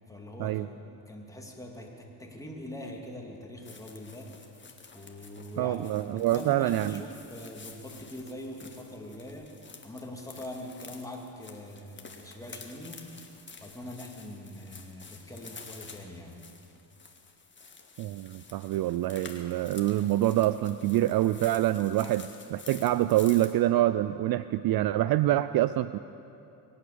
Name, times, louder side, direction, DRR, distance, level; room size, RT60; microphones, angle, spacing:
voice 1, 0.1-4.3 4.9-9.5 9.8-13.0 13.6-16.4, left 1 dB, 5° left, 0 dB, 2.8 m, -43 dB
sound 1, 3.6-23.5, left 4 dB, 25° left, 1.8 m, -50 dB
voice 2, 5.6-7.0 18.0-26.0, right 14 dB, 55° right, 14 dB, 0.5 m, -26 dB
23.5 x 8.7 x 6.9 m, 2.7 s
supercardioid pair, 80°, 44 cm